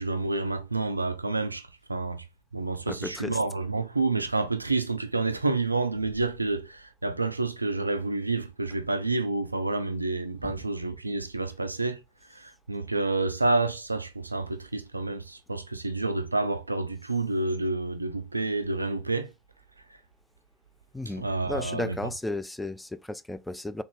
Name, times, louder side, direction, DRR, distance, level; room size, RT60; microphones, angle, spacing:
voice 1, 0.0-2.2 2.5-12.0 12.3-19.3 21.2-22.0, right 3 dB, 90° right, 0.3 m, -29 dB
voice 2, 2.9-3.4 10.4-10.6 20.9-23.8, left 1 dB, 5° left, 0.4 m, -34 dB
3.6 x 2.3 x 3.4 m
figure-of-eight pair, 70°, 0 cm